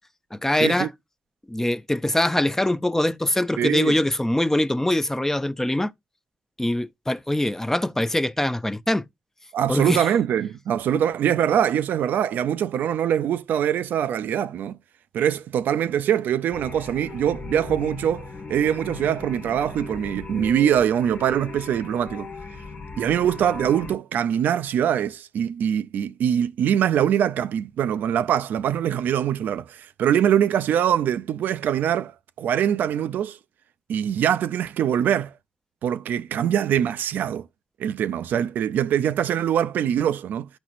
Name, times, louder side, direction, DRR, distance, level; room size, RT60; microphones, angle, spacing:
voice 1, 0.3-0.9 1.5-5.9 6.6-9.0 9.7-10.1, left 1 dB, 15° left, 0.5 m, -23 dB
voice 2, 3.6-4.0 9.5-14.8 15.1-22.3 23.0-32.1 32.4-33.4 33.9-35.3 35.8-37.5 37.8-40.5, right 9 dB, 85° right, 0.3 m, -23 dB
sound 1, 16.5-23.9, left 4 dB, 60° left, 1.2 m, -38 dB
12.0 x 4.3 x 2.5 m
supercardioid pair, 50°, 3 cm